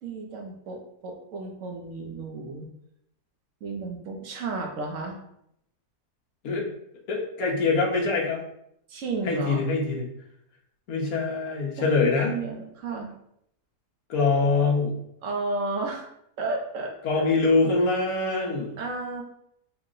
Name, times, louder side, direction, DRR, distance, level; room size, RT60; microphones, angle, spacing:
voice 1, 0.0-2.7 3.6-5.2 8.9-9.6 11.8-13.1 15.2-16.1 16.4-17.3 18.8-19.2, right 3 dB, 60° right, 2 dB, 1.0 m, -33 dB
voice 2, 7.1-8.4 9.2-10.1 10.9-12.3 14.1-15.0 17.0-18.8, left 3 dB, 65° left, -2 dB, 1.3 m, -24 dB
4.6 x 2.1 x 3.7 m, 0.74 s
omnidirectional pair, 1.7 m